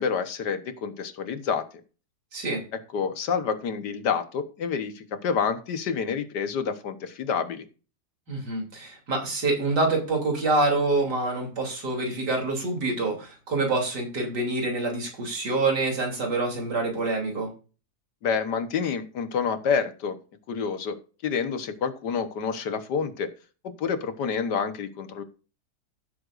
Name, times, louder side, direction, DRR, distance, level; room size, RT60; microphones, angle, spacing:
voice 1, 0.0-1.6 2.9-7.7 18.2-20.2 20.5-21.0 21.2-23.3 23.8-25.2, left 6 dB, 85° left, 10 dB, 1.8 m, -28 dB
voice 2, 8.3-17.5, right 2 dB, 80° right, 0 dB, 3.7 m, -26 dB
15.0 x 8.0 x 2.5 m, 0.35 s
omnidirectional pair, 1.8 m